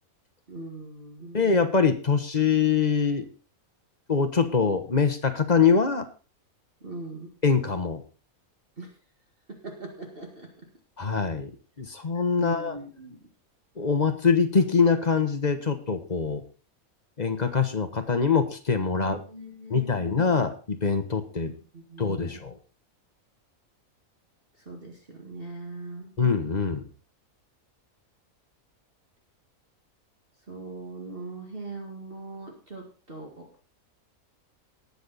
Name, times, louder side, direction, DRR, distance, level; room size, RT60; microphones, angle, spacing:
voice 1, 0.5-1.5 6.8-7.3 8.8-8.9 9.5-10.7 12.4-13.2 19.0-20.3 21.5-22.4 24.7-26.1 30.5-33.5, right 2 dB, 40° right, 1 dB, 2.2 m, -41 dB
voice 2, 1.3-3.3 4.1-6.0 7.4-8.0 11.0-11.5 11.8-12.8 13.8-16.4 17.2-19.2 19.7-21.5 22.0-22.5 26.2-26.8, left 5 dB, 30° left, 8 dB, 1.1 m, -24 dB
19.0 x 6.8 x 4.1 m, 0.36 s
omnidirectional pair, 1.5 m